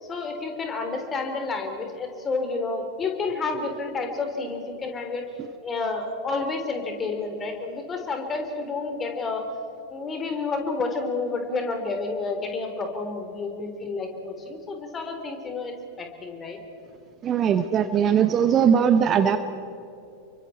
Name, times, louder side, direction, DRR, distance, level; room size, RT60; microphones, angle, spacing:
voice 1, 0.0-5.2 5.6-9.4 9.9-16.6, left 3 dB, 20° left, 4 dB, 3.7 m, -30 dB
voice 2, 17.2-19.4, right 8 dB, 30° right, 10 dB, 1.0 m, -20 dB
29.5 x 24.0 x 4.4 m, 2.8 s
figure-of-eight pair, 90°, 0 cm